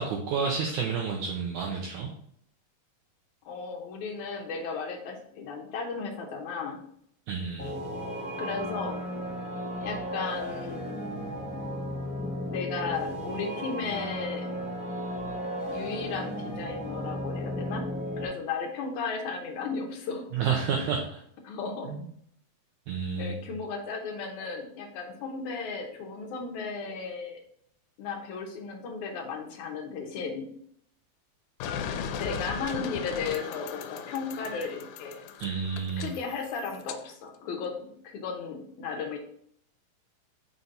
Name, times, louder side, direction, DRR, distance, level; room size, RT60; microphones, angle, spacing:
voice 1, 0.0-2.1 7.3-7.7 20.3-21.2 21.9-22.1 22.9-23.3 35.4-36.1, right 6 dB, 80° right, 1 dB, 1.8 m, -30 dB
voice 2, 3.5-6.8 8.4-9.1 9.8-10.9 12.5-14.5 15.7-20.3 21.4-21.9 23.2-27.4 28.0-30.5 32.1-35.2 36.0-37.8 38.0-39.2, left 5 dB, 70° left, 1 dB, 2.0 m, -35 dB
sound 1, 7.6-18.3, equal, 5° right, 0.8 m, -35 dB
sound 2, 31.6-37.0, left 7 dB, 85° left, 2.4 m, -37 dB
5.8 x 4.1 x 4.0 m, 0.67 s
omnidirectional pair, 4.1 m